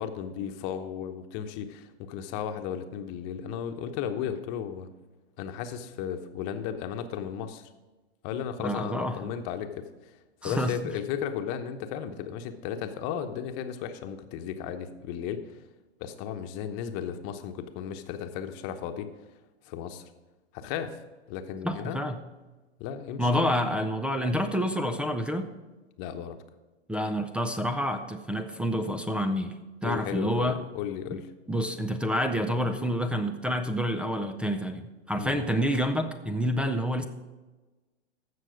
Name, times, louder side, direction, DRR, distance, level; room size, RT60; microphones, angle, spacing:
voice 1, 0.0-4.9 5.4-7.7 8.2-10.1 10.4-15.6 16.0-19.1 19.6-20.1 20.5-21.0 21.3-22.0 22.8-23.3 26.0-26.4 29.8-31.3 35.2-35.5, left 8 dB, 40° left, 7 dB, 1.0 m, -35 dB
voice 2, 8.6-9.3 10.4-10.8 21.6-22.2 23.2-25.5 26.9-29.6 29.8-30.6 31.5-37.0, equal, 5° right, 8 dB, 0.4 m, -28 dB
15.0 x 6.3 x 5.0 m, 1.2 s
hypercardioid pair, 115°, 33 cm